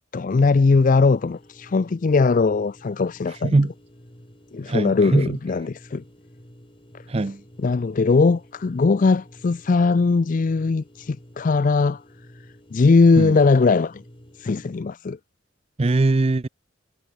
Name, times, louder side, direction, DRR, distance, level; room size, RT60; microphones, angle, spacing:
voice 1, 0.1-3.5 4.5-6.0 7.6-12.0 12.7-14.0 14.4-15.2, left 4 dB, 40° left, 0.4 m, -19 dB
sound 1, 0.5-14.8, equal, 25° left, 6.7 m, -49 dB
voice 2, 4.6-5.4 7.1-7.4 13.1-13.4 15.8-16.5, right 2 dB, 30° right, 0.5 m, -21 dB
head